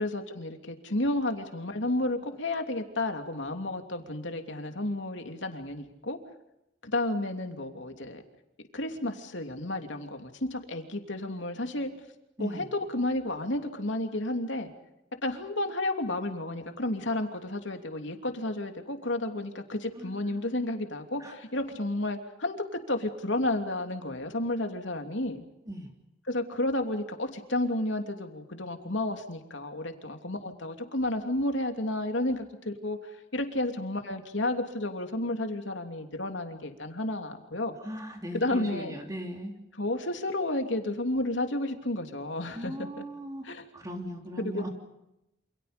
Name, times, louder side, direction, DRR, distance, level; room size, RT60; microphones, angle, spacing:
voice 1, 0.0-6.2 6.8-8.2 8.7-11.9 12.4-12.6 12.9-14.7 15.2-25.4 26.3-37.7 38.3-39.0 39.8-43.0 43.4-43.7 44.4-44.7, left 1 dB, 70° left, 5 dB, 3.0 m, -32 dB
voice 2, 37.8-39.5 42.5-44.7, equal, 15° right, 1 dB, 3.4 m, -38 dB
28.5 x 28.0 x 5.3 m, 0.88 s
head